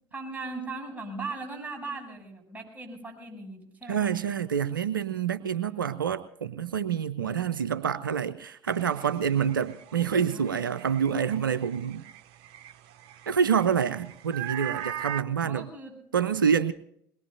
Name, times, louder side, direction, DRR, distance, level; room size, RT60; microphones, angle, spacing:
voice 1, 0.1-4.1 5.4-6.0 7.2-7.6 10.0-10.6 15.4-16.0, right 3 dB, 15° right, 1 dB, 7.5 m, -39 dB
voice 2, 3.9-12.0 13.3-15.6 16.1-16.7, right 7 dB, 90° right, 13 dB, 0.5 m, -27 dB
sound 1, 8.7-15.2, right 11 dB, 60° right, 0.9 m, -41 dB
22.0 x 20.5 x 2.6 m, 0.71 s
hypercardioid pair, 60°, 11 cm